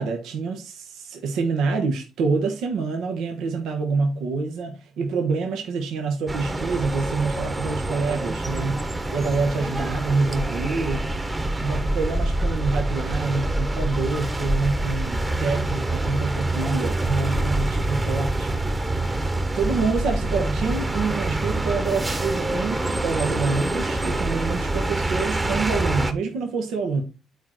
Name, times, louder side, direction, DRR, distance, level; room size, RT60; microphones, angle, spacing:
voice 1, 0.0-11.1 11.6-18.6 19.5-27.0, right 4 dB, 85° right, 1.2 m, -26 dB
sound 1, 6.3-26.1, right 2 dB, 20° right, 1.2 m, -26 dB
8.7 x 4.6 x 4.5 m
cardioid pair, 90°, 0 cm